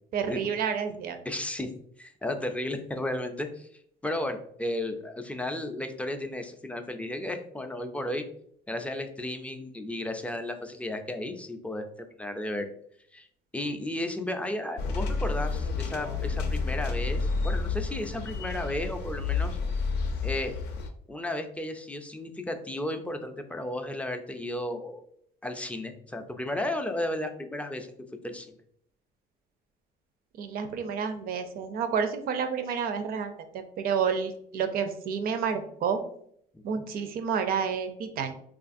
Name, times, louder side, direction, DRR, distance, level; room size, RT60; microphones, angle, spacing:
voice 1, 0.1-1.2 30.4-36.0 36.6-38.3, right 6 dB, 60° right, 7 dB, 0.5 m, -30 dB
voice 2, 1.3-1.7 2.0-3.7 4.0-8.3 8.7-12.7 13.1-13.3 13.5-19.6 20.2-20.6 21.1-25.0 25.4-27.9 28.2-28.5 36.5-36.8, left 1 dB, 10° left, 6 dB, 0.3 m, -34 dB
sound 1, 14.8-20.9, left 4 dB, 80° left, 0.5 m, -30 dB
3.3 x 2.4 x 2.5 m, 0.66 s
cardioid pair, 110°, 17 cm